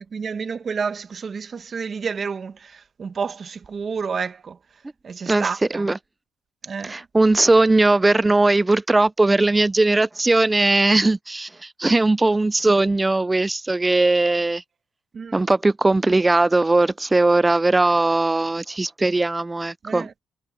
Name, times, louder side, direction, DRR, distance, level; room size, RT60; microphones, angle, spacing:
voice 1, 0.1-4.6 5.0-5.9 6.6-7.0 15.1-15.5 19.8-20.1, right 5 dB, 45° right, 1.9 m, -30 dB
voice 2, 5.3-6.0 6.8-14.6 15.3-20.1, right 2 dB, 15° right, 0.6 m, -19 dB
cardioid pair, 90°, 0 cm